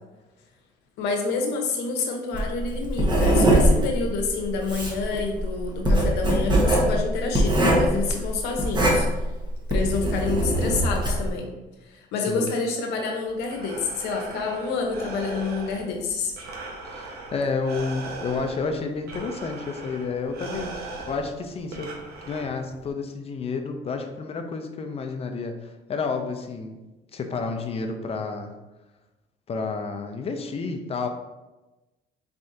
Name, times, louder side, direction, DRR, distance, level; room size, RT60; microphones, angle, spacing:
voice 1, 1.0-9.1 9.7-11.5 11.9-16.3, left 4 dB, 85° left, 2 dB, 0.8 m, -28 dB
Writing, 2.3-11.3, right 1 dB, 25° right, 1.0 m, -22 dB
Breathing, 13.3-22.9, right 2 dB, 70° right, 0.9 m, -39 dB
voice 2, 16.8-21.9 22.3-26.8 27.1-28.5 29.5-31.1, left 4 dB, 35° left, 5 dB, 0.5 m, -30 dB
4.3 x 3.5 x 2.7 m, 1.1 s
cardioid pair, 110°, 17 cm